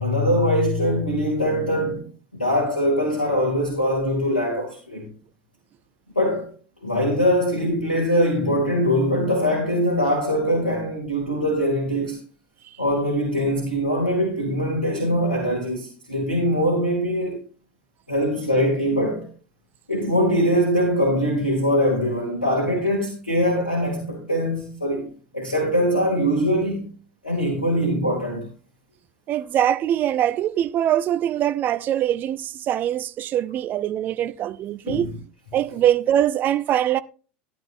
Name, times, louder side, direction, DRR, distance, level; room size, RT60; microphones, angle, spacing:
voice 1, 0.0-2.0 2.3-5.1 6.1-6.5 6.8-12.2 12.8-17.4 18.1-19.3 19.9-25.1 25.3-26.9 27.2-28.5 34.9-35.1, equal, 90° left, 2.5 m, -22 dB
voice 2, 29.3-35.1 35.5-37.0, right 11 dB, 40° right, 0.6 m, -23 dB
13.5 x 10.5 x 2.6 m
figure-of-eight pair, 75°, 5 cm